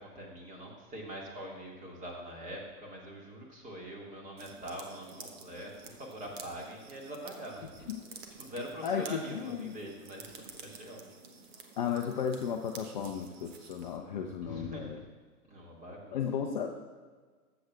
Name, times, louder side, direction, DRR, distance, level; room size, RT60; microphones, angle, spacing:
voice 1, 0.0-11.1 14.4-15.1 15.4-16.2, equal, 15° right, -2 dB, 2.1 m, -44 dB
sound 1, 4.4-14.0, right 4 dB, 40° right, 1.3 m, -51 dB
voice 2, 8.8-9.7 11.8-15.0 16.1-16.7, left 7 dB, 30° left, 3 dB, 0.6 m, -34 dB
20.5 x 7.9 x 2.5 m, 1.5 s
figure-of-eight pair, 115°, 45 cm